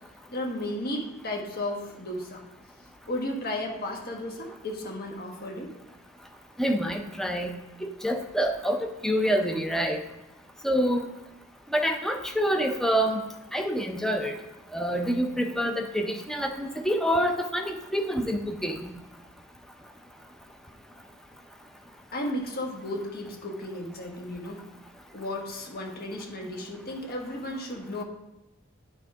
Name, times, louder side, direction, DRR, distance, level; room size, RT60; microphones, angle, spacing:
voice 1, 0.3-2.4 3.1-5.7 22.1-24.6 25.1-28.0, left 1 dB, 50° left, 0 dB, 1.4 m, -34 dB
voice 2, 6.6-7.5 7.8-10.0 10.6-11.1 11.7-13.2 13.5-14.3 14.7-18.9, equal, ahead, 4 dB, 0.6 m, -27 dB
10.0 x 3.6 x 4.8 m, 1.0 s
head